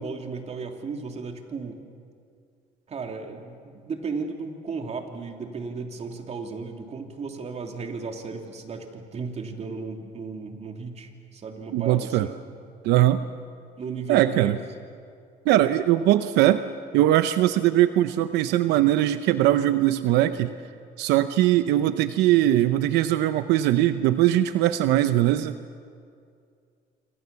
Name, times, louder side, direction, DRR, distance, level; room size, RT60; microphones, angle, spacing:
voice 1, 0.0-1.8 2.9-12.4 13.8-14.6, right 4 dB, 40° right, 3 dB, 3.1 m, -35 dB
voice 2, 11.7-12.3 12.8-13.2 14.1-14.6 15.5-16.6 16.9-20.5 21.0-25.5, right 13 dB, 90° right, 11 dB, 0.8 m, -21 dB
27.5 x 26.0 x 7.1 m, 2.3 s
cardioid pair, 110°, 17 cm